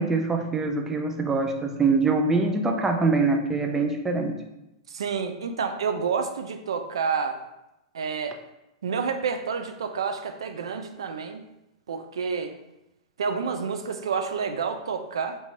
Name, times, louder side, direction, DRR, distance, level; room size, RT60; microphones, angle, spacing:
voice 1, 0.0-4.4, right 3 dB, 15° right, 4 dB, 0.4 m, -24 dB
voice 2, 4.9-7.4 7.9-8.4 8.8-11.4 11.9-12.6 13.2-15.4, right 5 dB, 85° right, 7 dB, 0.3 m, -29 dB
3.6 x 2.6 x 3.0 m, 0.92 s
hypercardioid pair, 120°, 3 cm